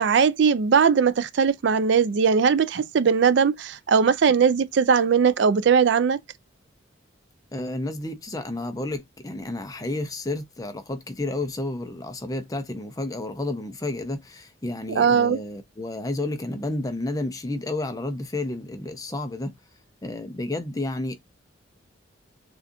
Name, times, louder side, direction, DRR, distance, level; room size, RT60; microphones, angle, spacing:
voice 1, 0.0-6.2 15.0-15.4, right 6 dB, 60° right, 0.4 m, -19 dB
voice 2, 7.5-19.5 20.0-21.2, left 2 dB, 20° left, 0.6 m, -31 dB
6.5 x 2.4 x 2.6 m
head